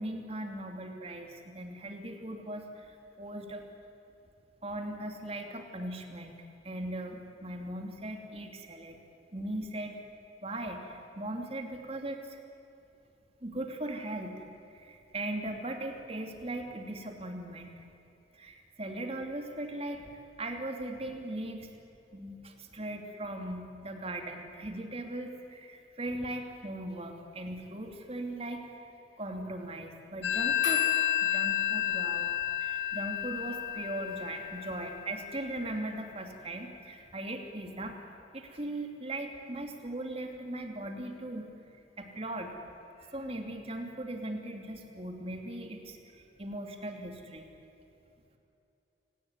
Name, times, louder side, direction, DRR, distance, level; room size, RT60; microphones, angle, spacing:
voice 1, 0.0-3.6 4.6-9.0 9.3-10.0 10.4-12.4 13.4-14.5 14.7-17.9 18.3-21.7 22.1-28.7 29.2-30.9 31.2-32.3 32.6-38.0 38.3-41.5 42.0-42.5 43.0-47.5, right 1 dB, 35° right, 4 dB, 2.9 m, -39 dB
Telephone, 30.2-35.6, left 11 dB, 75° left, 3.0 m, -31 dB
29.5 x 19.0 x 9.8 m, 2.9 s
head